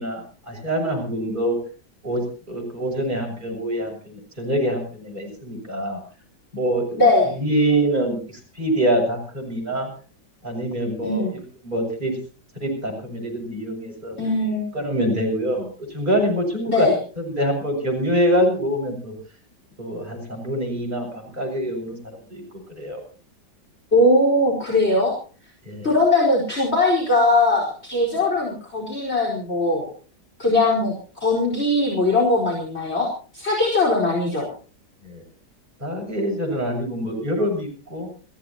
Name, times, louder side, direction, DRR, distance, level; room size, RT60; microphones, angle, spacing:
voice 1, 0.0-1.6 2.0-6.0 6.5-7.0 7.2-9.9 10.4-12.1 12.5-14.2 14.7-16.9 17.2-19.1 19.8-22.0 22.3-22.4 22.8-23.0 25.6-25.9 35.0-35.2 35.8-38.1, right 1 dB, 25° right, 0 dB, 6.8 m, -25 dB
voice 2, 7.0-7.3 11.0-11.3 14.2-14.7 16.7-17.0 23.9-25.1 25.8-29.9 30.4-30.9 31.2-34.5, left 2 dB, 35° left, -2 dB, 5.0 m, -20 dB
27.5 x 16.0 x 2.9 m, 0.38 s
omnidirectional pair, 2.0 m